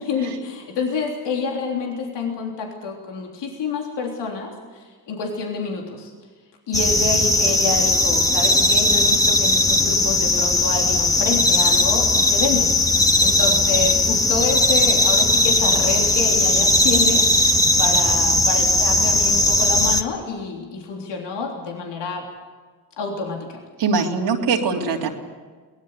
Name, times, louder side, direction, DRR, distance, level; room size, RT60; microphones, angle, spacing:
voice 1, 0.1-6.1 6.7-12.7 13.2-22.2 23.0-23.6, left 4 dB, 85° left, 0 dB, 3.5 m, -28 dB
sound 1, 6.7-20.0, left 2 dB, 10° left, 1.7 m, -18 dB
voice 2, 23.8-25.1, right 4 dB, 80° right, 0 dB, 3.3 m, -21 dB
22.5 x 19.0 x 8.2 m, 1.5 s
supercardioid pair, 60°, 41 cm